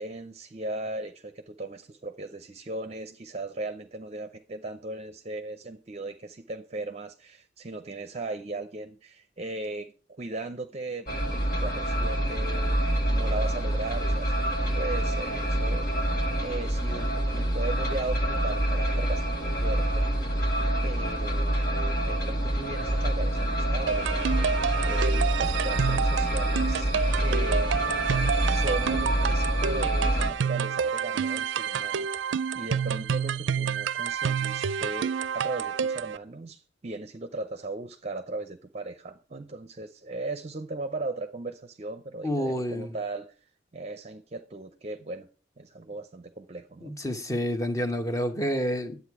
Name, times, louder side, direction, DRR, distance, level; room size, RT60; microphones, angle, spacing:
voice 1, 0.0-16.1 16.3-20.1 20.8-26.9 27.2-27.7 28.5-43.3 43.7-45.3 45.6-47.0, right 2 dB, 35° right, 0.6 m, -37 dB
sound 1, 11.1-30.3, right 1 dB, 55° left, 1.6 m, -26 dB
sound 2, 23.9-36.2, right 7 dB, 80° right, 0.4 m, -29 dB
voice 2, 42.2-42.9 46.8-49.0, equal, 20° left, 1.1 m, -29 dB
10.5 x 8.3 x 4.7 m
head